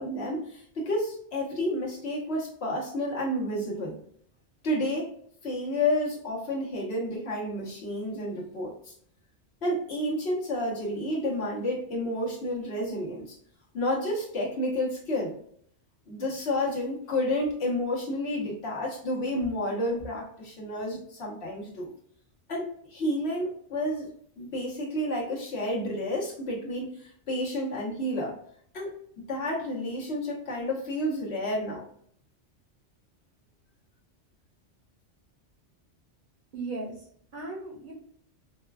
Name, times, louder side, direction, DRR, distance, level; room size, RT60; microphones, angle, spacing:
voice 1, 0.0-4.0 4.6-5.1 5.4-8.9 9.6-13.3 13.7-15.3 16.1-21.9 22.5-24.1 24.4-28.3 28.7-28.9 29.3-31.8, left 1 dB, 65° left, -3 dB, 1.4 m, -30 dB
voice 2, 36.5-37.9, right 3 dB, 50° right, -2 dB, 1.0 m, -37 dB
5.0 x 2.3 x 2.3 m, 0.64 s
omnidirectional pair, 1.2 m